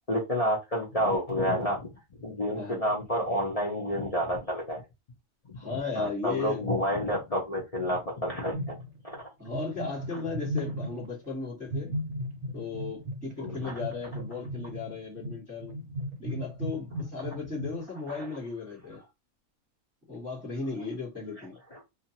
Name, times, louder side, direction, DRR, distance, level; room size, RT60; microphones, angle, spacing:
voice 1, 0.1-1.9 2.2-4.8 5.5-8.8 9.0-9.2 13.4-13.7 18.1-18.3 21.7-21.8, equal, 40° left, 0.5 m, -29 dB
voice 2, 5.6-6.6 9.4-11.9 12.5-15.8 16.2-19.0 20.1-21.6, left 4 dB, 10° right, 1.2 m, -36 dB
sound 1, 8.5-9.2 9.5-11.2 11.7-17.8, equal, 60° right, 0.8 m, -36 dB
2.6 x 2.5 x 2.8 m
omnidirectional pair, 1.6 m